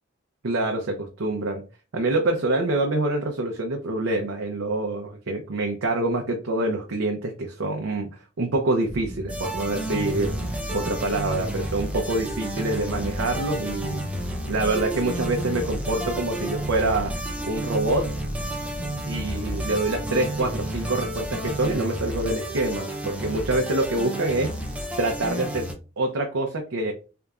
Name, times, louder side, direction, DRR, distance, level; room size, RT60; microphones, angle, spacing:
voice 1, 0.4-1.6 1.9-10.4 10.7-14.0 14.4-17.1 17.4-18.1 19.1-24.5 25.0-25.7 26.0-26.9, right 2 dB, 90° right, 2 dB, 0.6 m, -26 dB
sound 1, 8.9-21.8, equal, 60° left, 1.4 m, -37 dB
sound 2, 9.3-25.7, right 1 dB, 5° right, 0.5 m, -32 dB
3.8 x 3.4 x 2.4 m, 0.34 s
head